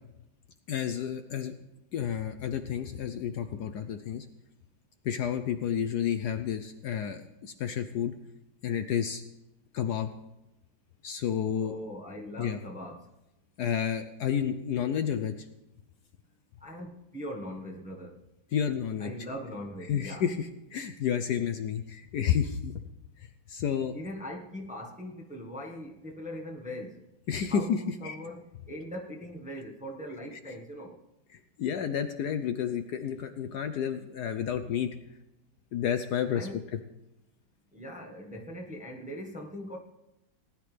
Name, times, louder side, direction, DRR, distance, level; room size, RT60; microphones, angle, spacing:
voice 1, 0.7-1.5 1.9-4.3 5.0-8.1 8.6-9.2 9.7-10.1 11.0-11.7 12.4-12.6 13.6-15.3 18.5-19.1 19.9-22.8 23.5-24.0 27.3-28.2 30.3-30.4 31.6-34.9 35.7-36.5, left 8 dB, 65° left, 8 dB, 1.1 m, -30 dB
voice 2, 11.6-13.1 16.6-18.2 19.0-20.2 23.9-27.0 27.5-31.0 36.3-36.6 37.7-39.8, equal, 5° right, 0 dB, 1.0 m, -41 dB
19.0 x 10.5 x 3.4 m, 0.93 s
omnidirectional pair, 2.1 m